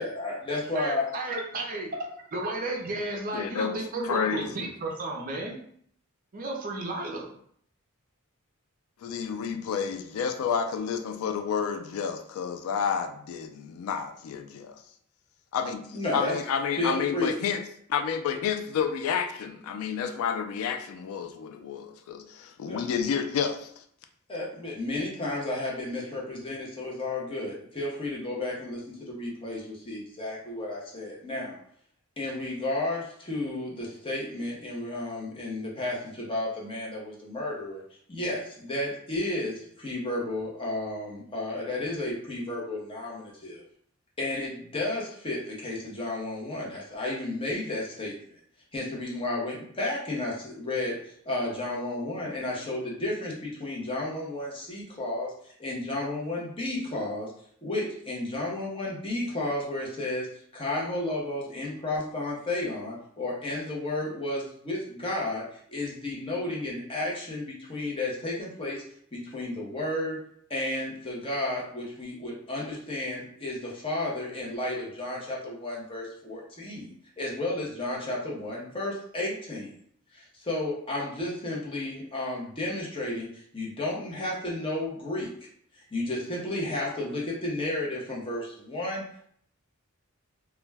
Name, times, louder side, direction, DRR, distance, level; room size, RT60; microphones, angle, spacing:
voice 1, 0.0-1.1 15.9-16.4 16.7-17.3 22.6-22.8 24.3-31.6 32.2-37.8 38.1-43.6 44.2-48.2 48.7-51.0 51.3-57.3 57.6-68.8 69.1-70.2 70.5-76.9 77.2-79.7 80.1-85.3 85.9-89.3, left 2 dB, 25° left, -4 dB, 0.6 m, -32 dB
voice 2, 0.7-5.6 6.3-7.3, right 2 dB, 40° right, 0 dB, 0.5 m, -33 dB
voice 3, 3.3-3.8 4.1-4.5 9.0-14.7 15.5-15.8 16.1-17.6 17.9-22.2 22.6-23.6, left 7 dB, 75° left, 6 dB, 0.3 m, -30 dB
2.2 x 2.1 x 3.3 m, 0.64 s
head